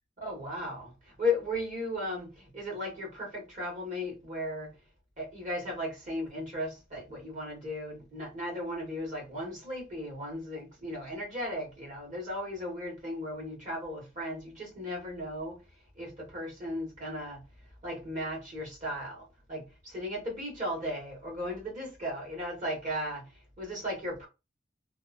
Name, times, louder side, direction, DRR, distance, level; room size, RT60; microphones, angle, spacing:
voice 1, 0.2-4.7 5.2-15.6 16.0-17.4 17.8-23.3 23.6-24.3, left 1 dB, 40° right, 1.5 m, -36 dB
2.8 x 2.4 x 2.5 m
head